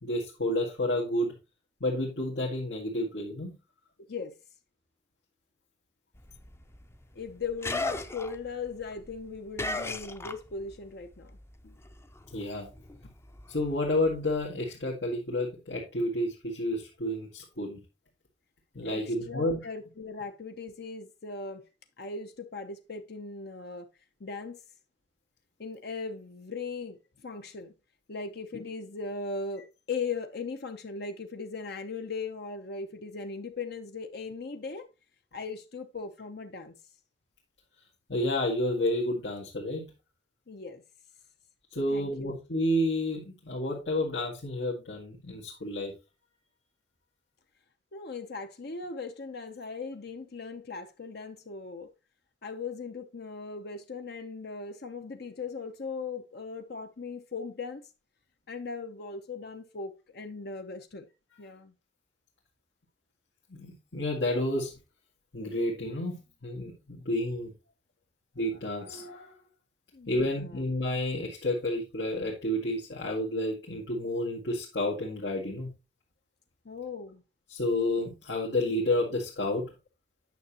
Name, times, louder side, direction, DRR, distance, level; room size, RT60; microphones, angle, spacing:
voice 1, 0.0-1.3 1.8-3.5 12.3-12.7 13.5-17.8 18.7-19.6 38.1-39.9 41.7-45.9 63.5-64.8 65.3-67.5 68.4-69.3 70.1-75.7 77.5-79.7, left 1 dB, 85° left, 2.0 m, -30 dB
sound 1, 6.2-10.9 11.1-14.5, left 2 dB, 15° left, 0.6 m, -38 dB
voice 2, 7.1-11.4 11.6-11.8 18.8-21.7 22.0-23.9 24.2-24.6 25.6-27.7 28.1-34.9 35.3-36.7 40.5-40.8 41.9-42.3 47.9-51.9 52.4-57.8 58.5-61.1 61.4-61.7 69.9-70.6 76.6-77.2, left 4 dB, 65° left, 0.8 m, -38 dB
9.3 x 6.4 x 2.9 m
head